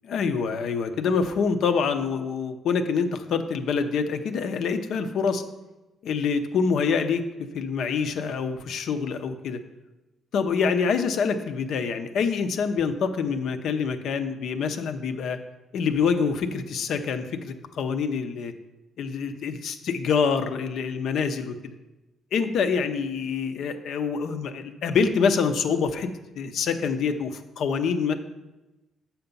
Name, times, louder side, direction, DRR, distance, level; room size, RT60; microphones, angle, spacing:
voice 1, 0.0-5.4 6.0-7.2 7.5-9.6 10.3-15.4 15.7-18.5 19.0-21.7 22.3-26.1 26.3-28.1, left 5 dB, 75° left, 8 dB, 0.7 m, -26 dB
7.8 x 5.9 x 5.3 m, 1.0 s
cardioid pair, 90°, 0 cm